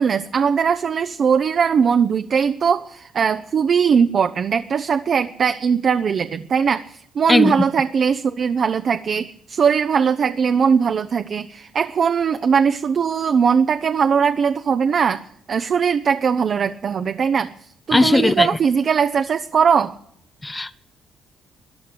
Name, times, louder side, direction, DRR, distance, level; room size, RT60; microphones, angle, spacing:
voice 1, 0.0-17.5 17.9-19.9, right 6 dB, 55° right, 0.6 m, -20 dB
voice 2, 17.9-18.5 20.4-20.8, left 2 dB, 15° left, 0.6 m, -17 dB
14.0 x 10.5 x 8.0 m
cardioid pair, 90°, 0 cm